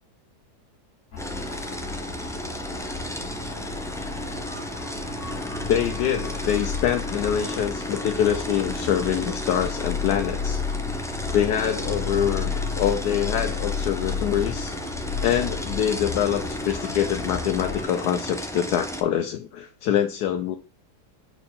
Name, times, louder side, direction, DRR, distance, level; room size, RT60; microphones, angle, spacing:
sound 1, 1.1-17.8, left 6 dB, 65° left, 1.5 m, -33 dB
sound 2, 1.2-19.0, equal, 5° left, 0.3 m, -34 dB
voice 1, 5.7-10.6 11.3-14.7 15.2-20.6, left 10 dB, 90° left, 1.2 m, -25 dB
4.8 x 4.4 x 5.4 m
omnidirectional pair, 1.7 m